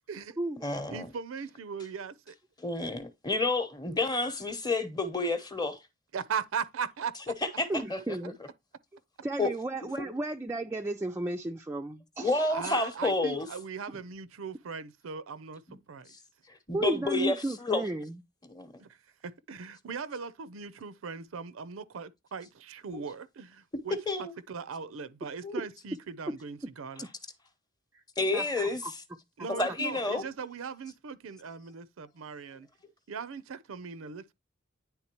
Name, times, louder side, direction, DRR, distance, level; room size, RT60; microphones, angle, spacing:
voice 1, 0.0-0.4 0.7-2.4 6.1-7.3 12.5-16.1 18.8-19.0 19.2-27.1 29.4-32.7 33.1-34.3, right 6 dB, 85° right, 0.5 m, -39 dB
voice 2, 0.6-1.1 2.6-5.8 7.6-8.0 9.4-9.5 10.0-10.1 12.2-13.5 15.7-15.8 16.7-17.8 18.5-18.7 22.9-23.0 24.1-24.3 25.4-25.6 28.2-28.8 29.5-30.2, left 2 dB, 20° left, 0.9 m, -30 dB
voice 3, 7.7-8.4 9.2-12.5 16.7-18.2 28.3-28.9 29.4-29.5, right 2 dB, 15° right, 0.3 m, -34 dB
9.8 x 3.5 x 2.9 m
head